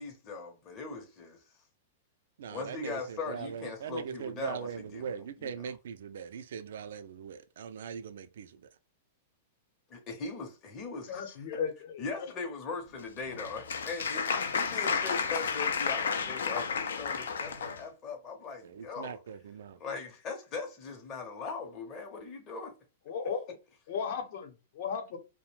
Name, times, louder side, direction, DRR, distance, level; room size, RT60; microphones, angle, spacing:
voice 1, 0.0-1.4 2.5-5.7 10.2-11.3 12.0-19.2 19.8-22.7, left 4 dB, 30° left, 0.7 m, -40 dB
voice 2, 2.4-8.7 18.6-19.8, right 7 dB, 75° right, 0.3 m, -40 dB
voice 3, 11.1-12.3 23.1-23.4 23.9-25.2, left 6 dB, 65° left, 0.8 m, -35 dB
Applause, 13.0-17.8, left 6 dB, 90° left, 0.4 m, -32 dB
2.4 x 2.1 x 3.1 m
hypercardioid pair, 130°, 0 cm